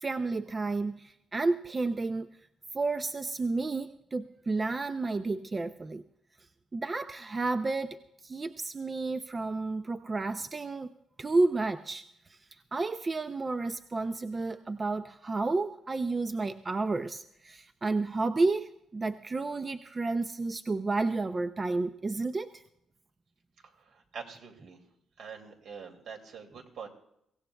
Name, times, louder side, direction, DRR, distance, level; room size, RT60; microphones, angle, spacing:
voice 1, 0.0-2.4 2.7-6.0 6.7-8.0 8.2-10.9 11.2-12.0 12.3-12.4 12.7-22.6, right 3 dB, 20° right, 9 dB, 0.4 m, -31 dB
voice 2, 23.8-24.8 25.2-26.9, right 6 dB, 70° right, 3 dB, 2.4 m, -45 dB
23.5 x 16.5 x 2.3 m, 0.78 s
cardioid pair, 165°, 0 cm